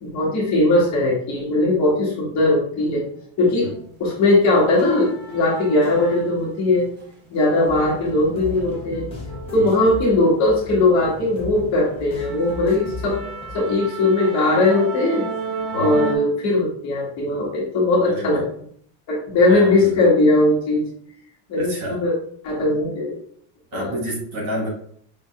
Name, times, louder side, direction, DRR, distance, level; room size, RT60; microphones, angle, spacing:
voice 1, 0.0-3.0 3.4-3.7 4.0-6.9 7.3-9.1 9.5-13.2 13.5-15.2 15.7-18.4 19.1-20.8 21.5-22.1 22.4-23.2 23.7-23.9, left 2 dB, 35° left, -4 dB, 1.6 m, -19 dB
sound 1, 3.6-3.8 4.2-6.5 6.9-10.7 11.1-11.3 11.7-11.8 12.2-16.2, right 4 dB, 25° right, 0.4 m, -35 dB
sound 2, 7.6-13.6, left 2 dB, 10° left, 0.7 m, -36 dB
voice 2, 18.1-18.5 19.4-20.0 21.6-22.0 23.7-24.7, right 1 dB, 50° right, -3 dB, 1.9 m, -29 dB
5.5 x 3.7 x 2.4 m, 0.63 s
cardioid pair, 175°, 48 cm